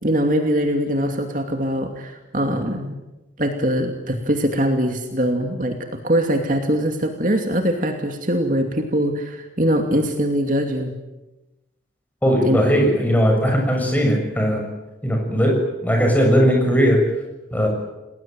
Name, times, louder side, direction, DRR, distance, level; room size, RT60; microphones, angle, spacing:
voice 1, 0.0-3.0 3.4-5.8 6.0-10.9 12.4-12.8, equal, 45° right, 4 dB, 2.6 m, -22 dB
voice 2, 12.2-14.6 15.0-17.0 17.5-17.7, equal, 10° left, 1 dB, 6.8 m, -18 dB
29.5 x 20.0 x 9.2 m, 1.0 s
head